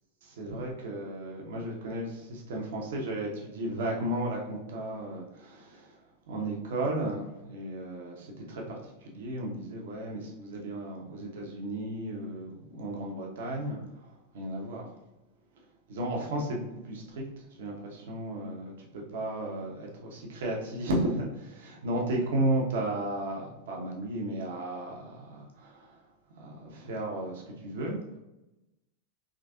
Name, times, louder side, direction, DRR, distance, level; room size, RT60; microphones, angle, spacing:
voice 1, 0.2-15.0 15.5-26.0 26.3-28.2, right 1 dB, 55° right, -1 dB, 0.9 m, -34 dB
3.8 x 3.2 x 2.3 m, 0.97 s
figure-of-eight pair, 90°, 0 cm